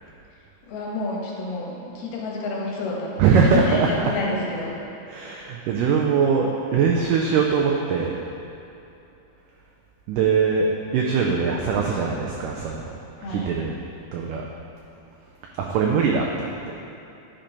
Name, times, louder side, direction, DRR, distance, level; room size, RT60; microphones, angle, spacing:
voice 1, 0.7-4.7 13.2-13.5, left 2 dB, 80° left, -3 dB, 3.1 m, -29 dB
voice 2, 3.2-4.1 5.1-8.2 10.1-12.8 13.3-13.7 14.1-14.4 15.6-16.5, right 5 dB, 90° right, -1 dB, 1.8 m, -21 dB
10.0 x 4.5 x 5.4 m, 2.8 s
omnidirectional pair, 4.4 m